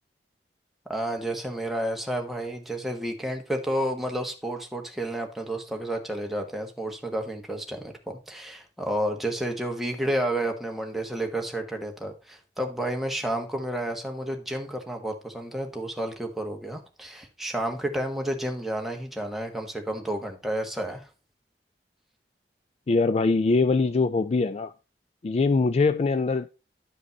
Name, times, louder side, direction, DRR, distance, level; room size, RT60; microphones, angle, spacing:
voice 1, 0.9-21.1, right 1 dB, ahead, 1.3 m, -31 dB
voice 2, 22.9-24.7 25.2-26.5, left 3 dB, 35° left, 0.3 m, -22 dB
11.0 x 5.1 x 4.0 m
head